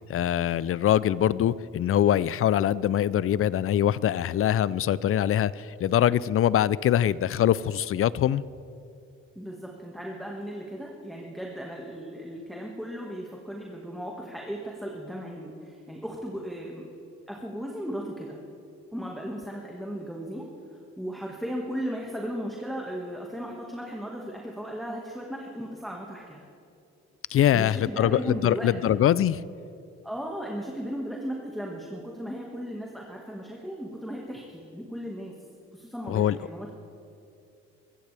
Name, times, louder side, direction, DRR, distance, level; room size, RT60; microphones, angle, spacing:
voice 1, 0.1-8.4 27.3-29.4 36.1-36.4, left 11 dB, 50° left, 19 dB, 0.4 m, -23 dB
voice 2, 9.4-16.8 17.3-18.4 18.9-20.5 21.0-26.4 27.5-28.7 30.0-35.3 35.7-36.7, equal, ahead, -2 dB, 1.7 m, -36 dB
24.0 x 15.0 x 3.4 m, 2.6 s
cardioid pair, 90°, 30 cm